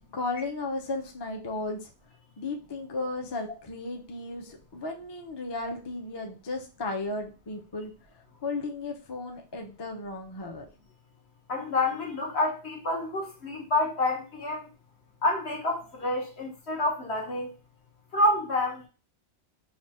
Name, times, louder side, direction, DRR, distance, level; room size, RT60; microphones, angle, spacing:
voice 1, 0.1-1.9 2.4-7.9 8.4-10.7, left 3 dB, 30° left, 0.5 m, -34 dB
voice 2, 11.5-14.7 15.2-17.5 18.1-18.9, left 1 dB, 70° left, 1.4 m, -28 dB
3.3 x 2.3 x 4.1 m
omnidirectional pair, 1.1 m